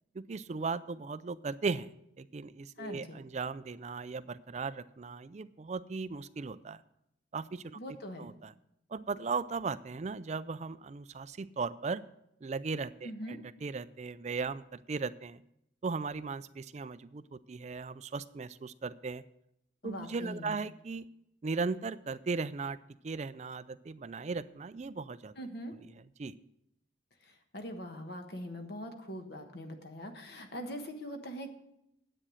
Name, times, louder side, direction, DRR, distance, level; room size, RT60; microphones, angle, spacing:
voice 1, 0.1-1.9 2.2-6.8 7.3-7.8 8.2-8.5 8.9-12.0 12.4-15.4 15.8-19.2 19.8-21.1 21.4-22.8 23.0-25.3 26.2-26.3, right 4 dB, 35° right, 15 dB, 0.4 m, -37 dB
voice 2, 2.8-3.2 7.7-8.3 13.0-13.4 19.8-20.6 25.3-25.7 27.2-31.6, equal, 55° left, 5 dB, 1.3 m, -42 dB
9.9 x 8.7 x 6.3 m, 0.80 s
head